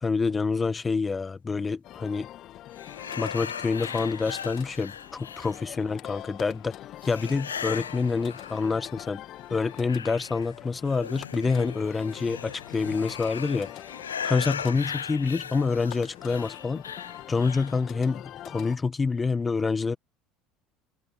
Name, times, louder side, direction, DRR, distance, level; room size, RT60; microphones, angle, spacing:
voice 1, 0.0-2.3 3.2-6.7 7.0-9.2 9.5-13.7 14.2-16.8 17.3-20.0, left 4 dB, 25° left, 1.4 m, -27 dB
sound 1, 1.8-18.8, left 13 dB, 50° left, 1.6 m, -44 dB
sound 2, 2.7-5.9 7.0-9.0 9.4-17.8, left 7 dB, 85° left, 0.8 m, -38 dB
figure-of-eight pair, 65°, 0 cm